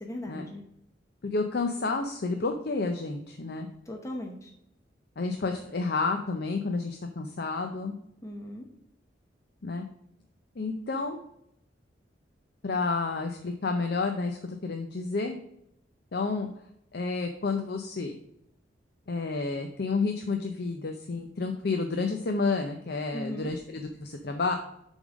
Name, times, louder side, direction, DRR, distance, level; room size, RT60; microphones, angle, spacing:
voice 1, 0.0-0.6 3.9-4.5 8.2-8.7 23.1-23.6, left 1 dB, 15° left, 1 dB, 0.8 m, -38 dB
voice 2, 1.2-3.7 5.2-7.9 9.6-9.8 10.6-11.2 12.6-15.4 16.1-16.5 16.9-18.1 19.1-24.5, left 3 dB, 60° left, 5 dB, 0.6 m, -30 dB
7.1 x 3.6 x 6.2 m, 0.77 s
head